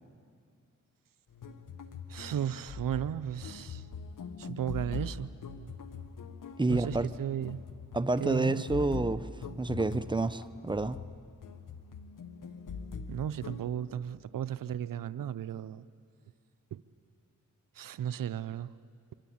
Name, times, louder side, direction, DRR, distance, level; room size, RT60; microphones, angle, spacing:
sound 1, 1.3-13.7, left 5 dB, 70° left, 1.4 m, -43 dB
voice 1, 2.1-3.9 4.4-5.3 6.7-7.6 8.2-8.6 13.1-15.9 16.7-16.8 17.8-18.7, right 9 dB, 80° right, 15 dB, 0.6 m, -35 dB
voice 2, 6.6-7.1 7.9-9.3 9.6-11.0, right 2 dB, 15° right, 12 dB, 0.9 m, -29 dB
25.5 x 24.0 x 8.7 m, 2.2 s
cardioid pair, 45°, 33 cm